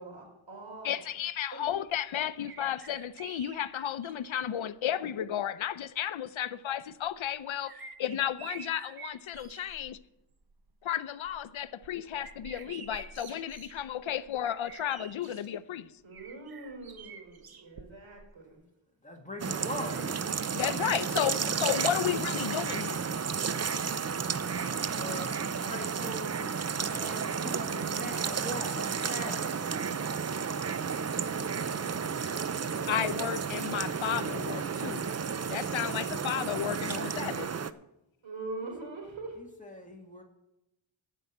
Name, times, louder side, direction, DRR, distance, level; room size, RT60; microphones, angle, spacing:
voice 1, 0.0-1.0 1.5-1.7 16.0-18.6 20.3-21.2 21.6-21.7 32.7-33.0 38.2-39.4, right 3 dB, 70° right, 4.0 m, -43 dB
voice 2, 0.8-10.0 10.8-15.9 20.5-23.0 32.9-35.1 35.5-37.5, left 10 dB, 80° left, 0.7 m, -33 dB
sound 1, 2.4-4.5 5.4-5.5 7.0-9.9 10.3-10.7 11.1-15.5 16.1-18.3 18.5-18.6, right 5 dB, 50° right, 1.1 m, -48 dB
voice 3, 19.0-20.3 24.6-29.7 36.4-36.6 38.6-38.7 39.4-40.2, left 1 dB, 15° left, 2.2 m, -42 dB
sound 2, 19.4-37.7, right 6 dB, 35° right, 0.5 m, -32 dB
sound 3, 20.7-22.5 25.2-27.2 30.6-30.8, right 1 dB, 5° right, 1.4 m, -51 dB
15.0 x 5.4 x 8.0 m
wide cardioid pair, 95°, 47 cm